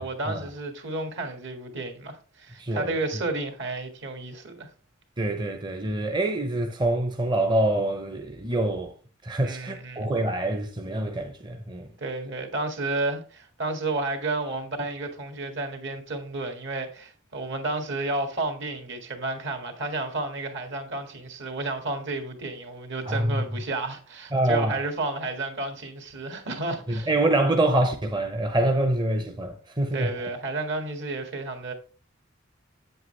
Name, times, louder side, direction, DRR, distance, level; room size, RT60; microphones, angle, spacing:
voice 1, 0.0-4.7 9.4-10.1 12.0-27.1 29.9-31.7, right 2 dB, 65° right, 1.8 m, -31 dB
voice 2, 2.6-2.9 5.2-8.9 9.2-11.9 23.1-23.4 24.3-24.8 26.9-30.1, right 1 dB, 20° right, 0.6 m, -25 dB
8.0 x 7.9 x 3.2 m
head